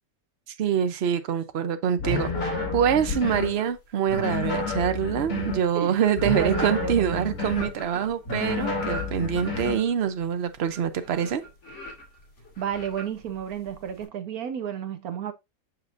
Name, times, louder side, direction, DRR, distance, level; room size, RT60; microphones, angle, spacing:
voice 1, 0.6-11.4, right 8 dB, 50° right, 0.8 m, -25 dB
sound 1, 2.0-3.6 4.1-5.7 6.2-7.7 8.3-9.8, left 3 dB, 65° left, 2.5 m, -30 dB
sound 2, 3.0-3.9 4.2-14.1, equal, 45° left, 2.6 m, -41 dB
voice 2, 5.3-6.0 6.2-7.3 12.6-15.3, right 9 dB, 70° right, 1.2 m, -32 dB
6.7 x 5.8 x 2.5 m
omnidirectional pair, 1.7 m